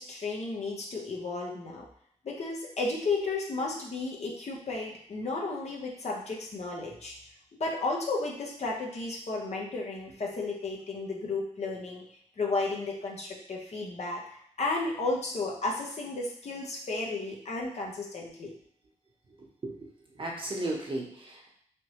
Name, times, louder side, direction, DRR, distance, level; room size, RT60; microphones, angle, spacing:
voice 1, 0.0-1.9 2.2-7.1 7.5-12.0 12.4-18.5, left 3 dB, 60° left, -2 dB, 0.9 m, -33 dB
voice 2, 19.4-19.9 20.2-21.5, right 1 dB, 40° right, -1 dB, 1.1 m, -35 dB
3.3 x 2.9 x 3.0 m, 0.65 s
cardioid pair, 55°, 13 cm